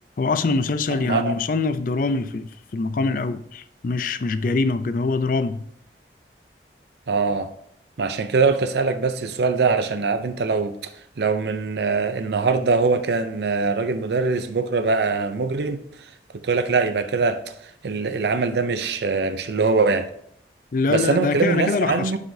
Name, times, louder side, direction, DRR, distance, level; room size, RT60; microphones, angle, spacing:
voice 1, 0.2-5.6 20.7-22.2, left 3 dB, 50° left, 0.4 m, -24 dB
voice 2, 1.0-1.4 7.1-7.5 8.0-10.7 11.2-15.8 16.4-17.4 17.8-20.1 20.9-22.2, right 4 dB, 70° right, 0.5 m, -22 dB
11.0 x 4.9 x 2.7 m
head